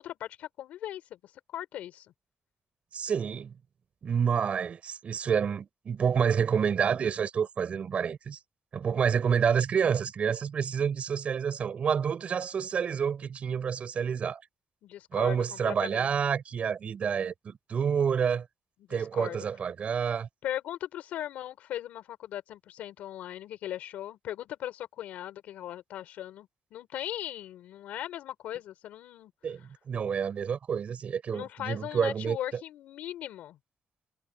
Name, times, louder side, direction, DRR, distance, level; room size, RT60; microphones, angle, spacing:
voice 1, 0.0-2.1 14.8-16.1 18.9-19.4 20.4-29.3 31.3-33.6, left 12 dB, 85° left, 4.2 m, -39 dB
voice 2, 2.9-3.5 4.0-8.4 8.7-14.4 15.1-18.5 18.9-20.3 29.4-32.4, right 7 dB, 60° right, 6.8 m, -28 dB
cardioid pair, 65°, 2 cm